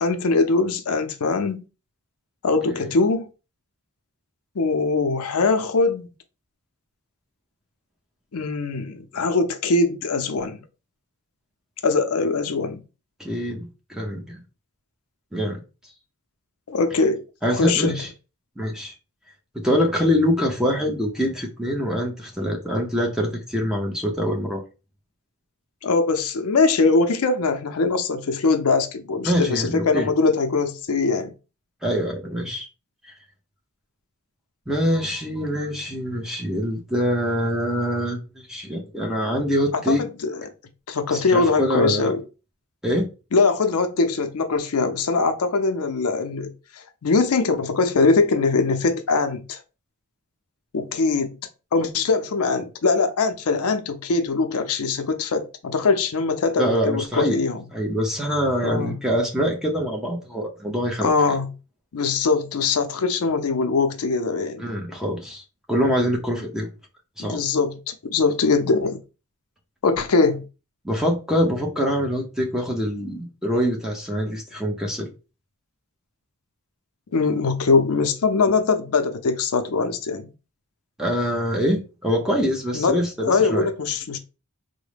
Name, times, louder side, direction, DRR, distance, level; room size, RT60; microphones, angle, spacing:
voice 1, 0.0-1.6 2.4-3.3 4.6-6.1 8.3-10.6 11.8-12.8 16.7-17.2 17.5-18.0 25.8-31.3 39.7-39.9 40.2-40.4 40.9-42.2 43.3-49.6 50.7-51.4 51.7-57.6 58.6-59.0 61.0-61.5 61.9-64.6 67.2-69.0 69.8-70.4 77.1-80.3 82.7-83.0 83.2-84.2, left 4 dB, 80° left, 0.5 m, -22 dB
voice 2, 13.2-14.4 15.3-15.6 17.4-18.1 18.6-18.9 19.5-24.6 29.2-30.1 31.8-32.7 34.7-40.0 41.1-42.1 42.8-43.1 56.6-57.4 57.7-61.1 64.6-65.4 65.7-66.7 67.2-67.4 70.8-75.1 81.0-83.7, equal, 5° right, 0.7 m, -24 dB
3.7 x 2.1 x 3.2 m
head